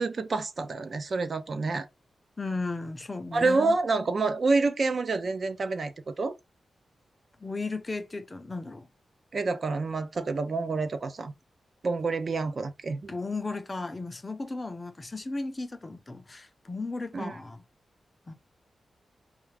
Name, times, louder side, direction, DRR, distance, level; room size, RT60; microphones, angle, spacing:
voice 1, 0.0-1.9 3.3-6.3 9.3-11.3 11.8-13.1 17.1-17.4, right 3 dB, 45° right, 0.4 m, -28 dB
voice 2, 2.4-3.8 7.4-8.9 13.1-17.6 18.3-18.4, left 3 dB, 20° left, 0.4 m, -35 dB
2.4 x 2.3 x 3.2 m
wide cardioid pair, 155°, 0 cm